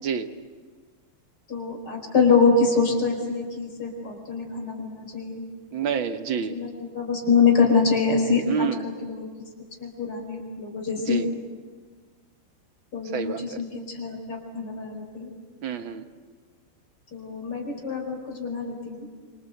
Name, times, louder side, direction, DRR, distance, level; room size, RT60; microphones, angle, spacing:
voice 1, 1.5-5.4 6.5-6.7 7.0-9.3 9.8-11.3 12.9-15.3 17.1-19.1, left 5 dB, 50° left, 3 dB, 5.3 m, -24 dB
voice 2, 5.7-6.6 8.5-8.9 11.0-11.3 13.1-13.4 15.6-16.0, right 7 dB, 65° right, 8 dB, 2.0 m, -28 dB
27.0 x 25.5 x 8.1 m, 1.5 s
omnidirectional pair, 2.4 m